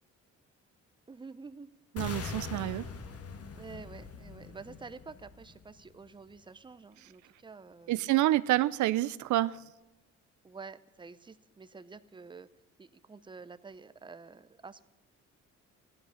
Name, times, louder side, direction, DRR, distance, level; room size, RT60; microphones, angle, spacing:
voice 1, 1.1-1.7 3.5-8.1 10.4-12.5 12.8-14.8, right 4 dB, 15° right, 14 dB, 0.7 m, -49 dB
sound 1, 2.0-6.0, left 5 dB, 50° left, 1.6 m, -42 dB
voice 2, 2.0-2.9 7.9-9.6, right 16 dB, 75° right, 17 dB, 0.5 m, -28 dB
15.5 x 11.0 x 6.4 m, 1.1 s
cardioid pair, 90°, 30 cm